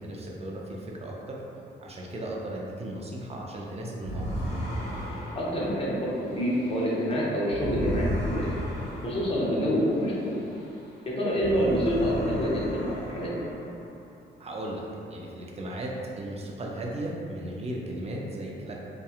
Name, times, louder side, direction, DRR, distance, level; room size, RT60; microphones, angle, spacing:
voice 1, 0.0-1.3 1.8-4.2 14.4-14.8 15.1-15.9 16.2-18.7, right 1 dB, 30° right, -2 dB, 0.5 m, -36 dB
sound 1, 4.0-10.9 11.2-13.9, equal, 70° left, 1.0 m, -35 dB
voice 2, 5.3-8.5 9.0-10.3 11.2-13.5, equal, 30° left, -5 dB, 0.7 m, -27 dB
2.8 x 2.3 x 2.3 m, 2.7 s
cardioid pair, 75°, 20 cm